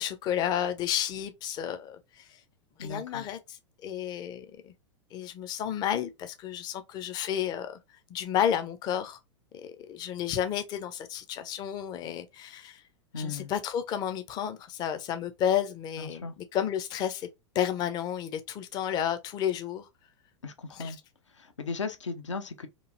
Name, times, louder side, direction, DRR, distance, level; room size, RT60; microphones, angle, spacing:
voice 1, 0.0-2.3 2.8-3.6 3.8-4.7 5.1-7.8 8.1-9.2 9.6-12.8 13.2-17.3 17.5-19.9 20.8-20.9, left 10 dB, 25° left, 0.5 m, -31 dB
voice 2, 2.8-3.2 13.1-13.5 16.0-16.3 20.4-21.0 21.3-22.7, left 4 dB, 75° left, 0.6 m, -36 dB
3.0 x 2.5 x 2.4 m
figure-of-eight pair, 90°, 16 cm